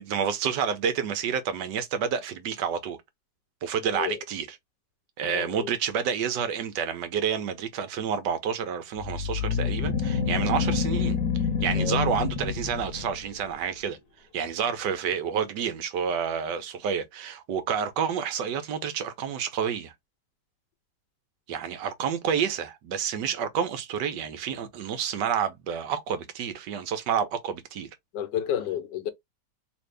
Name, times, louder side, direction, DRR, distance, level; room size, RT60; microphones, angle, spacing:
voice 1, 0.0-3.0 3.6-4.5 5.2-11.2 11.6-14.0 14.3-19.9 21.5-27.9, right 7 dB, 90° right, 1.4 m, -29 dB
voice 2, 5.2-5.7 11.8-12.0 28.1-29.1, left 10 dB, 90° left, 1.3 m, -31 dB
sound 1, 9.0-13.4, left 6 dB, 70° left, 1.1 m, -27 dB
3.3 x 2.6 x 3.3 m
omnidirectional pair, 1.8 m